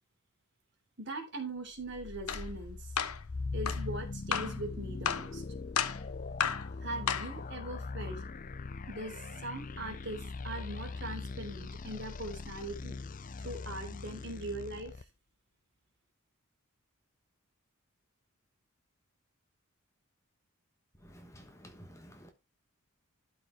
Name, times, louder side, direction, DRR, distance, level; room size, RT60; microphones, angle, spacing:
voice 1, 1.0-3.0 3.5-5.4 6.8-8.2 8.9-13.0 13.4-15.1, right 1 dB, 50° right, 3.2 m, -41 dB
sound 1, 1.8-15.0, left 3 dB, 35° left, 0.5 m, -41 dB
sound 2, 2.3-2.4 3.0-3.2 3.7-3.8 4.3-4.6 5.1-5.3 5.8-6.0 6.4-6.7 7.1-7.3, left 7 dB, 85° left, 1.1 m, -32 dB
voice 2, 21.1-22.3, equal, 15° left, 1.2 m, -52 dB
12.5 x 4.9 x 4.5 m
head